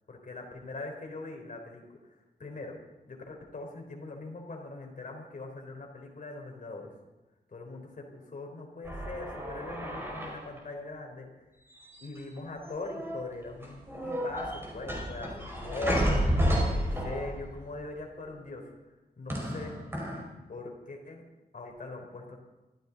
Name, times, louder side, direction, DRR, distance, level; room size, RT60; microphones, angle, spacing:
voice 1, 0.1-1.8 2.4-2.8 3.1-6.9 7.5-11.3 12.0-16.3 17.0-18.6 19.2-19.7 20.5-21.2 21.5-22.4, left 2 dB, 50° left, 2 dB, 3.7 m, -41 dB
sound 1, 8.8-10.6 11.8-12.4 12.6-13.2 13.6-17.6 19.3-20.2, equal, 15° right, 4.8 m, -31 dB
24.5 x 14.5 x 4.0 m, 1.1 s
wide cardioid pair, 160°, 17 cm